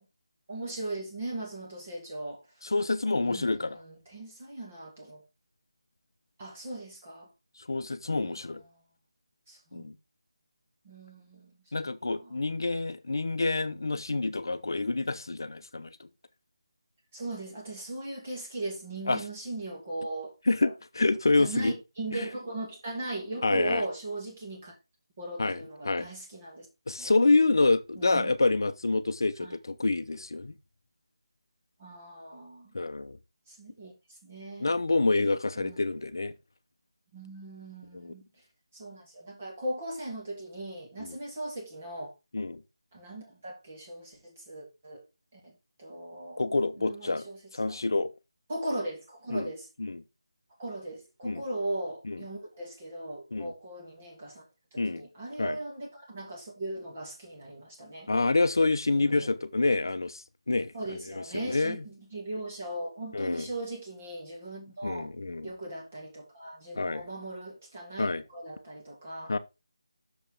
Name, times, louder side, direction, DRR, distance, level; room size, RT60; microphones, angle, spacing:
voice 1, 0.5-2.4 3.2-5.2 6.4-7.3 8.1-8.3 8.7-8.8 9.5-9.9 10.8-11.6 12.2-12.4 17.1-20.4 20.6-20.7 21.4-24.8 25.2-26.7 27.0-27.1 28.0-28.3 29.4-29.6 31.8-32.7 33.5-33.9 34.2-34.7 35.6-35.8 37.1-38.3 38.7-42.1 42.9-45.0 45.3-45.5 45.8-46.5 46.8-47.8 48.5-49.7 50.6-54.4 54.7-58.1 58.9-59.3 60.7-65.1 65.4-69.3, right 1 dB, 20° right, 1.8 m, -38 dB
voice 2, 2.6-3.8 7.7-8.6 9.7-9.9 11.7-16.1 19.1-19.2 20.5-21.7 22.1-22.3 23.4-23.8 25.4-26.1 26.9-30.5 32.7-33.2 34.6-36.3 38.0-38.1 41.0-41.2 42.3-42.6 46.4-47.3 47.5-48.1 49.3-49.5 49.8-50.0 51.2-51.4 52.1-52.2 53.3-53.5 54.8-55.0 55.4-55.6 58.1-60.7 61.2-61.8 63.1-63.5 64.8-65.5 66.8-67.0 68.0-68.2 69.3-69.4, left 3 dB, 50° left, 0.7 m, -27 dB
7.1 x 6.8 x 3.7 m
figure-of-eight pair, 180°, 3 cm